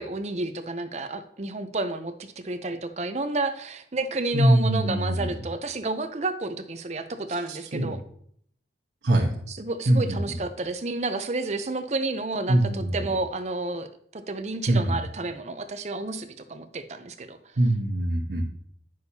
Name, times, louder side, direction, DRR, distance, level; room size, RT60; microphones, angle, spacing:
voice 1, 0.0-8.0 9.5-13.9 14.1-17.4, right 2 dB, 40° right, 8 dB, 0.6 m, -31 dB
voice 2, 4.3-5.4 7.5-7.9 9.0-9.3 9.9-10.4 12.5-13.1 14.7-15.0 17.6-18.4, right 1 dB, 85° right, -3 dB, 1.2 m, -23 dB
9.6 x 6.4 x 2.8 m, 0.65 s
head